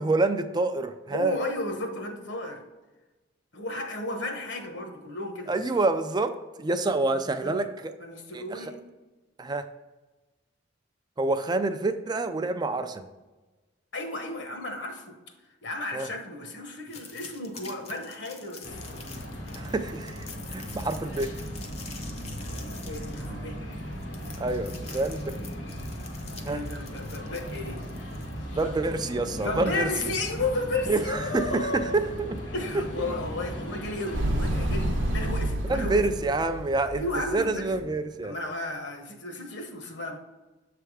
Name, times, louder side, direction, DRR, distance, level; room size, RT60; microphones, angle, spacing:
voice 1, 0.0-1.4 5.5-6.3 6.6-7.9 8.3-8.7 9.4-9.7 11.2-13.1 15.9-16.1 19.5-21.3 24.4-25.4 26.5-26.6 28.5-30.1 30.9-32.4 35.7-37.0 37.3-38.4, right 2 dB, 20° right, 9 dB, 0.3 m, -27 dB
voice 2, 1.1-2.6 3.5-5.5 7.4-7.7 8.0-8.8 13.9-15.1 15.6-19.0 22.9-23.6 26.5-27.8 28.6-28.7 29.4-32.0 32.5-36.0 36.9-37.7 38.2-40.2, left 2 dB, 65° left, 4 dB, 1.0 m, -33 dB
sound 1, 16.9-28.6, left 5 dB, 35° left, 0.7 m, -47 dB
sound 2, 18.6-35.5, equal, 90° left, 1.2 m, -37 dB
Motorcycle, 34.1-38.1, right 1 dB, 75° right, 0.7 m, -30 dB
7.1 x 3.4 x 4.7 m, 1.2 s
head